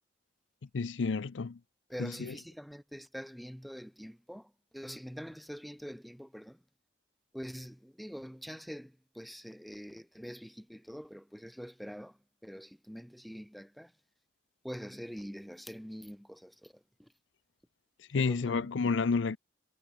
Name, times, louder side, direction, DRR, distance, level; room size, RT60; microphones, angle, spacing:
voice 1, 0.7-1.6 2.0-2.3 18.1-19.4, left 4 dB, 85° left, 0.5 m, -30 dB
voice 2, 1.9-6.6 7.3-13.9 14.6-17.1 18.2-18.7, equal, ahead, 1.5 m, -45 dB
head